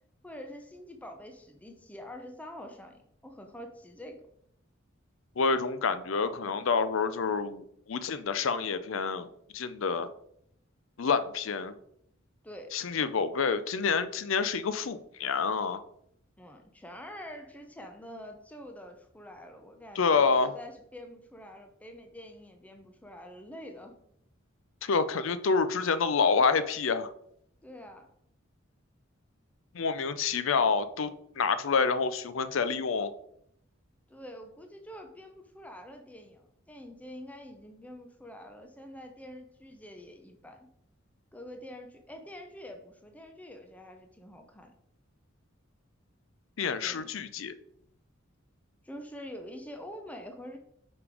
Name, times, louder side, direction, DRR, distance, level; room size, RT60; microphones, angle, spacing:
voice 1, 0.2-4.3 12.4-12.7 16.4-20.3 20.5-24.0 27.6-28.1 34.1-40.7 41.3-44.7 46.8-47.1 48.8-50.6, left 1 dB, 5° left, 4 dB, 0.6 m, -46 dB
voice 2, 5.4-9.3 9.5-10.1 11.0-11.7 12.7-15.8 20.0-20.5 24.8-27.1 29.7-33.1 46.6-47.5, left 5 dB, 70° left, 13 dB, 0.5 m, -28 dB
5.2 x 5.0 x 4.8 m, 0.72 s
head